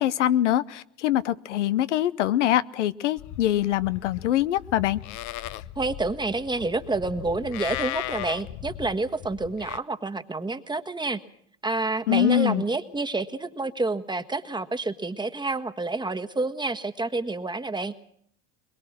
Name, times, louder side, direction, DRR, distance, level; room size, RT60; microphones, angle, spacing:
voice 1, 0.0-5.0 12.1-12.6, left 12 dB, 90° left, 15 dB, 0.8 m, -23 dB
Livestock farm animals working animals, 3.2-9.8, left 13 dB, 60° left, 1.0 m, -37 dB
voice 2, 5.8-11.2 11.6-17.9, right 3 dB, 15° right, 8 dB, 1.5 m, -28 dB
22.5 x 21.5 x 6.3 m, 0.67 s
hypercardioid pair, 85°, 35 cm